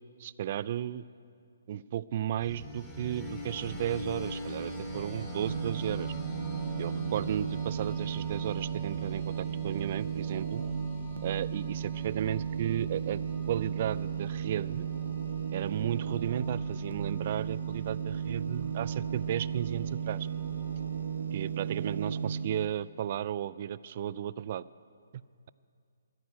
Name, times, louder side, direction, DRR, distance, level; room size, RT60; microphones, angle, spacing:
voice 1, 0.2-1.0 1.7-6.1 6.8-10.6 11.2-13.2 13.5-14.9 15.5-20.3 21.3-24.6, right 11 dB, 45° right, 18 dB, 0.3 m, -34 dB
sound 1, 2.4-21.0, equal, 10° left, 2.3 m, -44 dB
sound 2, 5.4-22.7, right 7 dB, 75° right, 0.9 m, -35 dB
12.0 x 9.4 x 9.2 m, 2.3 s
hypercardioid pair, 150°, 0 cm